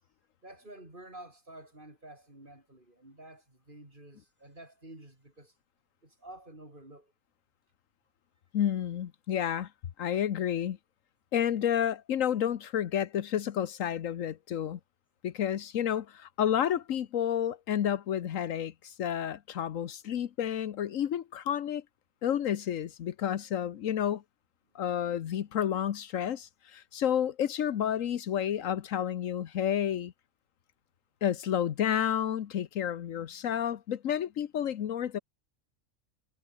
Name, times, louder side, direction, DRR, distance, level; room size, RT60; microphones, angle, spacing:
voice 1, 0.4-5.5 6.0-7.1, right 1 dB, 40° right, 5.6 m, -50 dB
voice 2, 8.5-9.7 10.0-10.8 11.3-14.8 15.2-21.8 22.2-24.2 24.7-30.1 31.2-35.2, left 9 dB, 80° left, 1.3 m, -30 dB
omnidirectional pair, 1.3 m